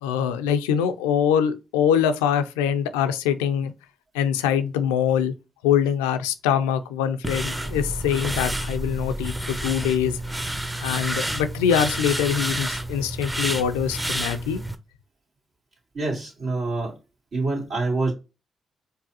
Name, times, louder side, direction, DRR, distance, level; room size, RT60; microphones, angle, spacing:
voice 1, 0.0-3.7 4.1-5.3 5.6-10.2 10.8-14.6, left 8 dB, 85° left, 0.3 m, -23 dB
sound 1, 7.2-14.7, right 1 dB, 15° right, 0.7 m, -29 dB
voice 2, 15.9-17.0 17.3-18.1, right 3 dB, 65° right, 2.2 m, -26 dB
4.6 x 2.6 x 2.7 m
hypercardioid pair, 40°, 0 cm